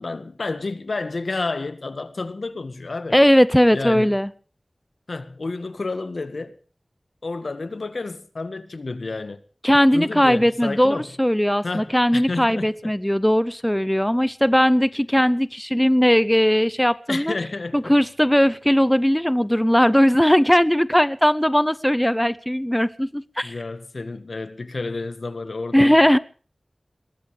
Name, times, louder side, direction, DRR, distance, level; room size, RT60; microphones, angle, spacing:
voice 1, 0.0-3.2 3.7-4.2 5.1-6.6 7.2-9.4 9.9-11.1 11.6-12.9 17.1-17.9 23.4-26.0, left 3 dB, 80° left, 1.7 m, -30 dB
voice 2, 3.1-4.3 9.6-17.3 17.7-23.5 25.7-26.2, equal, 5° left, 0.7 m, -18 dB
22.0 x 19.5 x 3.4 m
wide cardioid pair, 65°, 0 cm